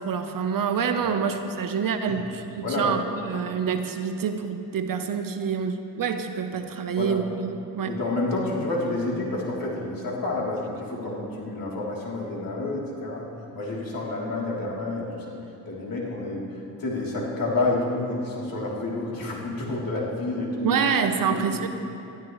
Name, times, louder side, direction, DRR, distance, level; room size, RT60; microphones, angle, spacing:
voice 1, 0.0-8.0 20.6-21.7, right 6 dB, 55° right, 7 dB, 1.0 m, -27 dB
voice 2, 2.6-3.0 6.9-7.2 7.8-13.3 13.5-15.3 15.6-20.8 21.3-21.4, left 2 dB, 55° left, -4 dB, 3.4 m, -29 dB
19.5 x 12.5 x 3.2 m, 2.8 s
supercardioid pair, 60°, 41 cm